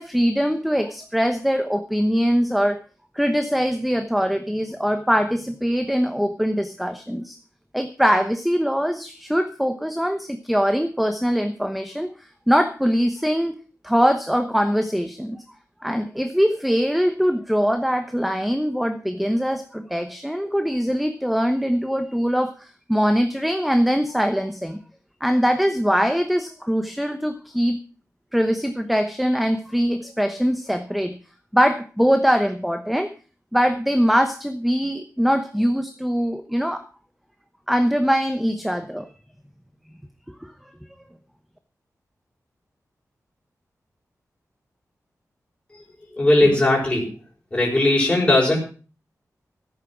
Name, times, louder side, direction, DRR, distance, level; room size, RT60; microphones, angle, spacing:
voice 1, 0.0-2.8 3.1-7.4 7.7-13.6 13.8-15.4 15.8-24.8 25.2-27.8 28.3-31.2 31.5-33.1 33.5-36.8 37.7-39.1 40.4-40.5, equal, ahead, 8 dB, 1.0 m, -22 dB
voice 2, 46.1-47.1 47.5-48.6, left 2 dB, 20° left, -3 dB, 5.1 m, -18 dB
14.5 x 9.0 x 6.0 m, 0.38 s
wide cardioid pair, 120°, 6 cm